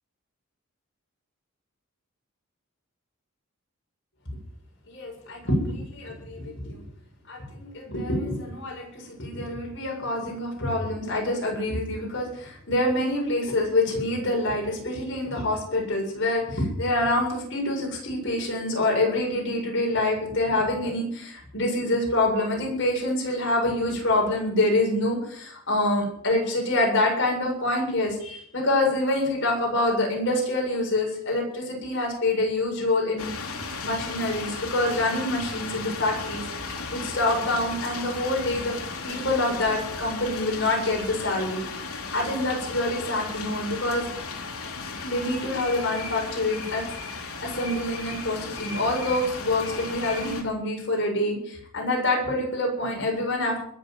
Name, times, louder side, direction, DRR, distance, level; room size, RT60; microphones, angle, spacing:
voice 1, 4.9-6.9 7.3-33.3 33.8-38.7 39.0-44.1 45.0-46.8 47.1-53.6, left 1 dB, 55° left, -1 dB, 7.8 m, -26 dB
sound 1, 33.2-50.4, left 4 dB, 90° left, 3.5 m, -35 dB
21.5 x 8.0 x 7.9 m, 0.65 s
head